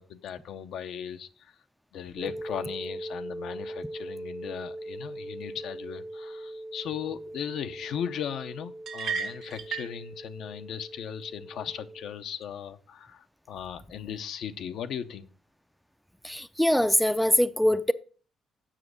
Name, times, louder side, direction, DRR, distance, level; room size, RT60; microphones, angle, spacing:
voice 1, 0.0-1.5 1.9-15.3, left 8 dB, 75° left, 0.7 m, -37 dB
sound 1, 2.2-12.1, right 1 dB, 55° right, 1.5 m, -41 dB
sound 2, 8.9-10.0, right 6 dB, 75° right, 1.4 m, -33 dB
voice 2, 16.2-17.9, equal, ahead, 0.4 m, -23 dB
7.5 x 6.1 x 6.4 m
cardioid pair, 90°, 0 cm